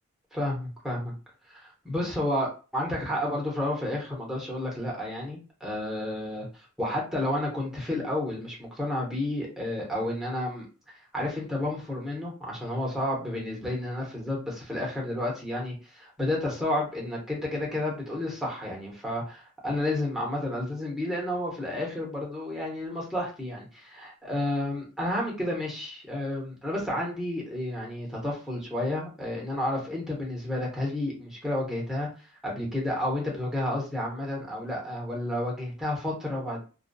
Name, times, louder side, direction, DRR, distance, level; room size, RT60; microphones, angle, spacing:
voice 1, 0.3-1.1 1.5-6.5 6.8-10.7 11.1-32.1 32.4-36.6, left 1 dB, ahead, -3 dB, 0.8 m, -31 dB
2.5 x 2.2 x 2.2 m, 0.33 s
head